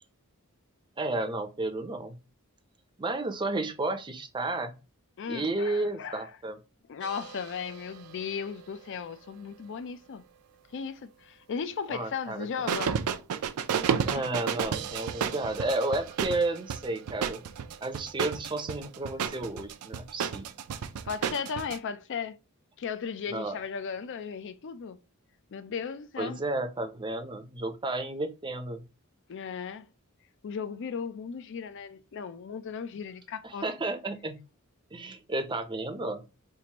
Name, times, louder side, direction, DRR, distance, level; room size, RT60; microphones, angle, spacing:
voice 1, 1.0-2.2 3.0-4.7 5.3-6.6 11.9-12.5 14.0-17.4 17.8-20.5 23.3-23.6 26.2-28.8 33.4-34.4 34.9-36.2, right 2 dB, 20° right, 0.5 m, -32 dB
voice 2, 5.2-6.3 6.9-10.2 10.7-13.0 14.1-14.2 21.0-22.4 22.8-25.0 25.5-26.4 29.3-29.9 30.4-33.6, left 6 dB, 55° left, 0.4 m, -36 dB
sound 1, 7.0-8.5 12.7-21.8, right 7 dB, 85° right, 0.4 m, -32 dB
4.6 x 2.5 x 2.8 m
head